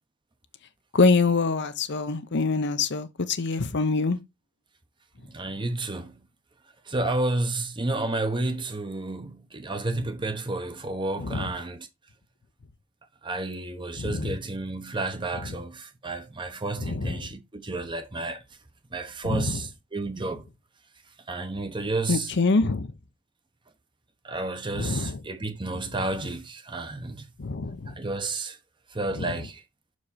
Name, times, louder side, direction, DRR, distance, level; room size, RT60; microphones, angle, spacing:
voice 1, 0.9-4.2 11.2-11.4 14.0-14.3 16.8-17.2 19.2-19.5 22.1-22.9 24.7-25.1 27.4-27.9 29.2-29.3, left 3 dB, 50° left, 0.7 m, -25 dB
voice 2, 5.3-6.3 6.9-11.9 13.2-18.4 18.9-20.5 21.3-22.3 24.2-27.3 27.9-28.6 28.9-29.6, right 2 dB, 20° right, 0.9 m, -31 dB
6.3 x 4.8 x 4.1 m
head